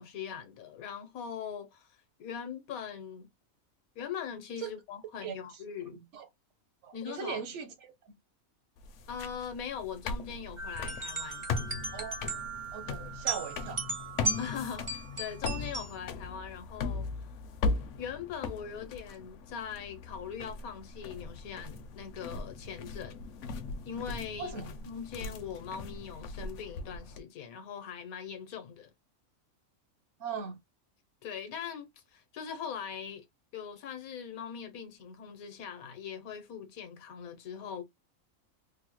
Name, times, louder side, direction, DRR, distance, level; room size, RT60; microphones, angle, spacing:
voice 1, 0.0-3.3 3.9-6.0 6.9-7.4 9.1-11.5 14.4-17.3 18.0-23.3 23.8-24.6 24.8-28.9 31.2-33.2 33.5-37.8, left 7 dB, 85° left, 1.2 m, -41 dB
voice 2, 5.9-6.3 6.8-7.7 11.9-12.2 12.7-13.8 24.4-24.6 30.2-30.6, right 6 dB, 65° right, 0.9 m, -38 dB
sound 1, 8.8-27.2, left 3 dB, 65° left, 0.8 m, -39 dB
sound 2, 10.6-15.9, right 2 dB, 40° right, 0.4 m, -37 dB
3.5 x 2.0 x 3.0 m
omnidirectional pair, 1.5 m